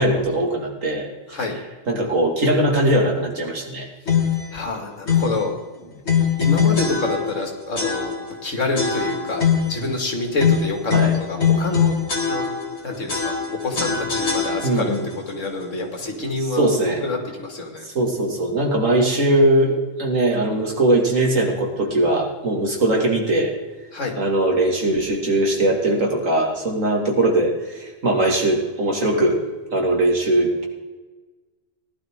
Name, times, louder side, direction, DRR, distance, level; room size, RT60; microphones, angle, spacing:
voice 1, 0.0-3.9 5.7-6.0 10.9-11.2 14.6-15.1 16.4-17.0 17.8-23.5 24.1-29.4 29.7-30.6, right 1 dB, 90° right, 1 dB, 2.9 m, -20 dB
sound 1, 4.1-4.5 5.1-5.4 6.1-7.4 7.8-8.4 8.8-9.8 10.4-12.8 13.1-15.0, left 7 dB, 55° left, 2.1 m, -21 dB
voice 2, 4.5-5.5 6.4-8.1 8.4-9.4 9.7-10.8 11.6-11.9 12.3-12.4 12.8-13.3 13.6-14.9 15.3-16.6 17.6-17.7 23.9-24.1, left 2 dB, 75° left, 3 dB, 2.6 m, -26 dB
18.5 x 11.5 x 3.8 m, 1.3 s
omnidirectional pair, 1.3 m